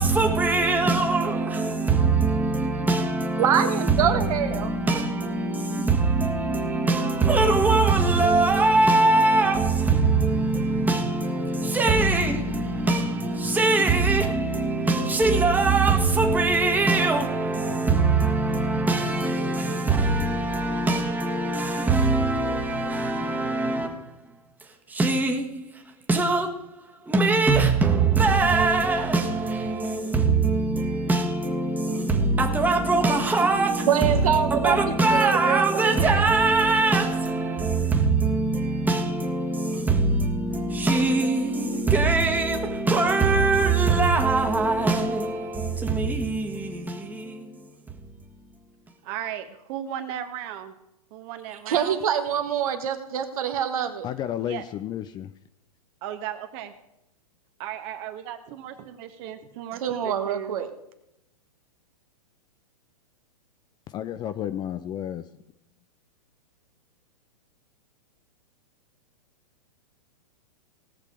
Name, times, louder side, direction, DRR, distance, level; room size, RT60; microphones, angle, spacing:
voice 1, 0.0-24.3 24.6-26.5 27.0-48.3, right 3 dB, 10° right, 1.5 m, -22 dB
voice 2, 3.4-4.7 33.9-34.8 35.1-36.3 51.7-54.0 59.8-60.7, right 9 dB, 65° right, 1.4 m, -25 dB
voice 3, 49.0-50.7 51.1-52.0 54.4-54.6 56.0-56.7 57.6-60.6, right 10 dB, 45° right, 1.4 m, -36 dB
voice 4, 54.0-55.3 63.9-65.3, left 11 dB, 20° left, 0.4 m, -32 dB
18.5 x 6.7 x 4.9 m
hypercardioid pair, 115°, 20 cm